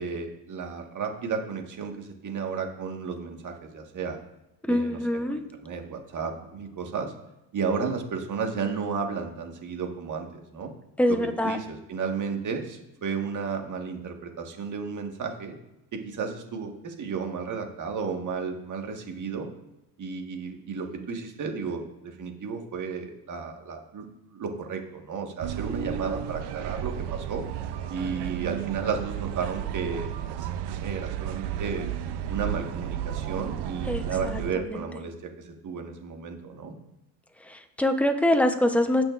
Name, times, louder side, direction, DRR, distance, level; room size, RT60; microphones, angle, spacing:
voice 1, 0.0-4.2 4.7-7.1 7.5-10.7 11.1-15.5 15.9-19.5 20.0-27.4 27.9-31.9 32.3-36.7, right 5 dB, 45° right, 3 dB, 1.7 m, -33 dB
voice 2, 4.6-5.4 11.0-11.6 33.9-34.4 37.5-39.0, left 1 dB, 5° left, 6 dB, 0.9 m, -24 dB
sound 1, 25.4-34.5, right 10 dB, 65° right, 0.7 m, -33 dB
16.5 x 6.1 x 2.6 m, 0.91 s
cardioid pair, 100°, 43 cm